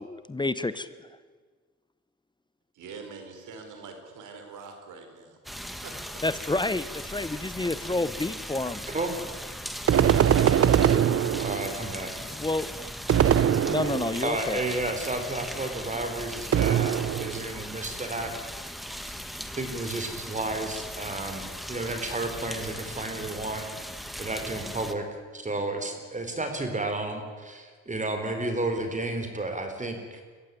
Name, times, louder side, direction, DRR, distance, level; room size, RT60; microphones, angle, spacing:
voice 1, 0.1-0.9 6.2-8.8 12.2-12.9 13.7-14.6, left 2 dB, 15° left, 14 dB, 1.0 m, -29 dB
voice 2, 2.7-6.2, right 4 dB, 80° right, 6 dB, 4.7 m, -44 dB
sound 1, 5.4-24.9, equal, ahead, 1.8 m, -38 dB
sound 2, 9.9-11.8 13.1-14.3 16.5-17.5, right 9 dB, 50° right, 0.9 m, -22 dB
voice 3, 11.4-12.1 14.2-18.3 19.6-23.7 24.2-25.1 25.3-30.3, right 2 dB, 25° right, 6 dB, 4.1 m, -32 dB
23.5 x 15.0 x 9.9 m, 1.5 s
cardioid pair, 90°, 30 cm